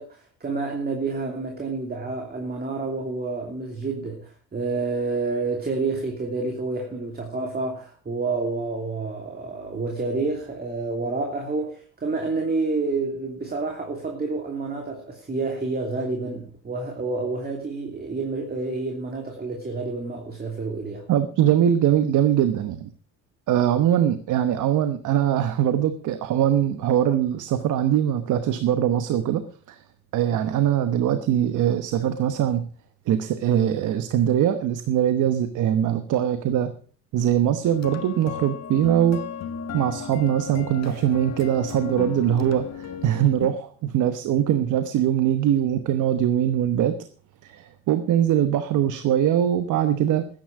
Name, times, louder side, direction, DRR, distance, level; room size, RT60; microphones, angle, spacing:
voice 1, 0.0-21.1, right 3 dB, 30° right, 2.9 m, -29 dB
voice 2, 21.1-22.9 23.5-29.4 29.7-29.8 30.1-32.7 33.1-36.7 37.1-39.2 39.7-47.0 47.4-50.3, right 10 dB, 80° right, 1.1 m, -22 dB
sound 1, 37.6-43.5, left 7 dB, 60° left, 1.6 m, -35 dB
13.0 x 10.0 x 6.0 m
cardioid pair, 90°, 30 cm